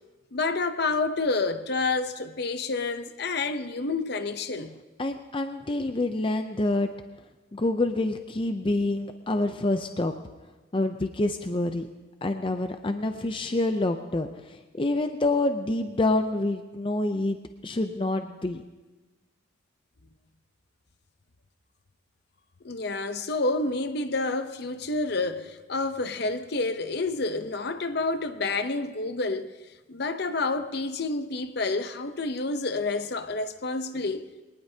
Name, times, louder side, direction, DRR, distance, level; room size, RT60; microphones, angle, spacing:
voice 1, 0.3-4.8 22.6-29.5 29.9-34.3, left 3 dB, 55° left, 0.7 m, -29 dB
voice 2, 5.0-6.9 7.5-10.1 10.7-11.9 12.2-17.4 17.6-18.6, left 2 dB, 25° left, 0.5 m, -27 dB
22.0 x 19.5 x 2.8 m
head